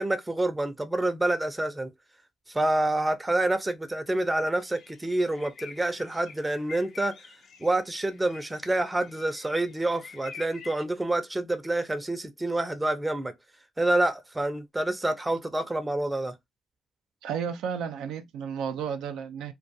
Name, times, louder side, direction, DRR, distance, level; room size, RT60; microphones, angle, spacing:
voice 1, 0.0-1.9 2.5-7.1 7.6-13.3 13.8-16.3, right 2 dB, 15° right, 0.5 m, -27 dB
sound 1, 4.6-10.8, left 5 dB, 60° left, 0.6 m, -48 dB
voice 2, 17.2-19.5, right 7 dB, 85° right, 0.4 m, -32 dB
2.2 x 2.2 x 2.6 m
cardioid pair, 90°, 0 cm